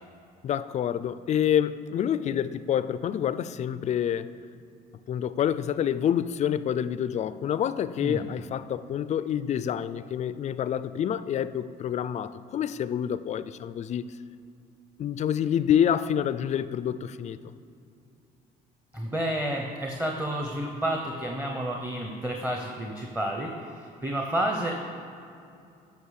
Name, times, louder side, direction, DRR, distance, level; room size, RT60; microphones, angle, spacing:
voice 1, 0.4-4.3 5.1-14.2 15.0-17.4, left 9 dB, 45° left, 0.4 m, -27 dB
voice 2, 18.9-24.7, right 1 dB, 10° right, 0.9 m, -30 dB
10.5 x 5.4 x 6.5 m
cardioid pair, 110°, 17 cm